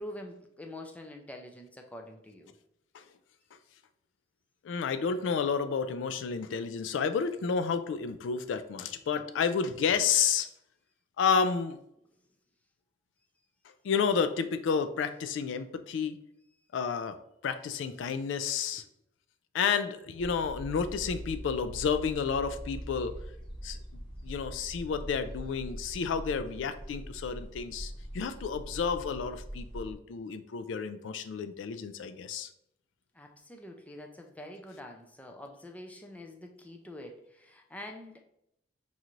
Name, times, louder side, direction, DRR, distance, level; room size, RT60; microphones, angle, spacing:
voice 1, 0.0-2.5 33.1-38.2, left 1 dB, 10° left, 3 dB, 0.4 m, -45 dB
voice 2, 4.6-10.5 11.2-11.8 13.8-16.2 16.7-17.2 17.4-18.8 19.5-23.2 23.6-23.8 24.2-32.5, left 6 dB, 75° left, 10 dB, 0.3 m, -30 dB
sound 1, 20.2-29.9, equal, 25° left, 0.8 m, -42 dB
5.4 x 2.5 x 3.0 m, 0.76 s
head